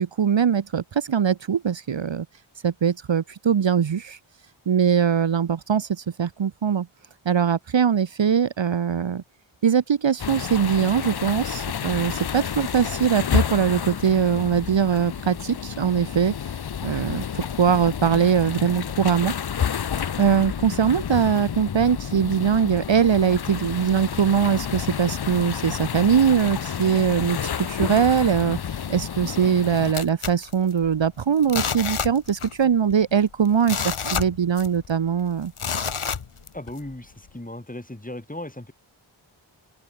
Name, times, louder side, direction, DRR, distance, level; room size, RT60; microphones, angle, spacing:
voice 1, 0.0-2.3 2.6-4.2 4.7-6.9 7.3-9.2 9.6-16.3 16.8-19.3 20.2-35.5, right 7 dB, 60° right, 0.9 m, -22 dB
sound 1, 10.2-29.9, left 8 dB, 50° left, 0.7 m, -30 dB
sound 2, 29.9-31.1 31.4-32.6 32.9-33.0 33.5-34.9 35.6-36.8 37.3-37.4, left 6 dB, 80° left, 1.8 m, -29 dB
voice 2, 36.5-38.7, left 1 dB, 15° left, 3.4 m, -36 dB
open air
wide cardioid pair, 45°, 49 cm